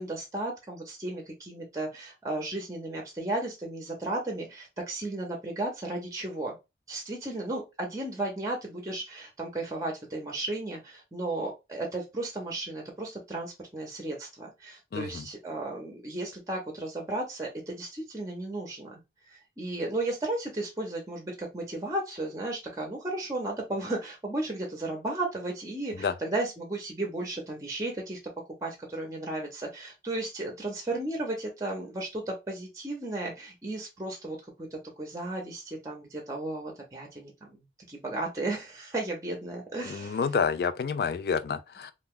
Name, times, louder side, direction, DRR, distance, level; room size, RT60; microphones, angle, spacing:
voice 1, 0.0-6.6 6.9-19.0 19.3-28.2 28.6-34.4 35.0-40.2, right 2 dB, 20° right, 0.6 m, -34 dB
voice 2, 14.9-15.3 26.0-26.1 39.9-41.9, left 5 dB, 60° left, 0.3 m, -29 dB
2.5 x 2.3 x 3.5 m
head